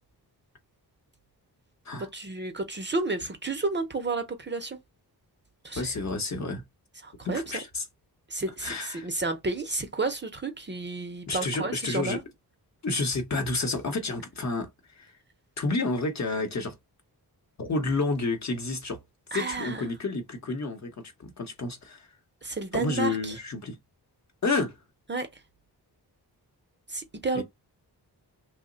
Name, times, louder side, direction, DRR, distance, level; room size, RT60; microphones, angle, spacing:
voice 1, 2.1-4.8 5.6-5.9 7.0-7.4 8.3-12.2 19.3-19.8 22.4-23.4 25.1-25.3 26.9-27.4, right 3 dB, 30° right, 0.5 m, -31 dB
voice 2, 5.8-6.6 7.2-7.8 8.6-9.1 11.3-12.2 12.8-14.7 14.9-15.1 15.6-16.7 17.6-19.0 19.3-20.9 21.2-22.1 22.7-23.8 24.4-24.8 27.3-27.4, left 3 dB, 45° left, 0.8 m, -30 dB
3.0 x 2.1 x 3.7 m
wide cardioid pair, 170°, 39 cm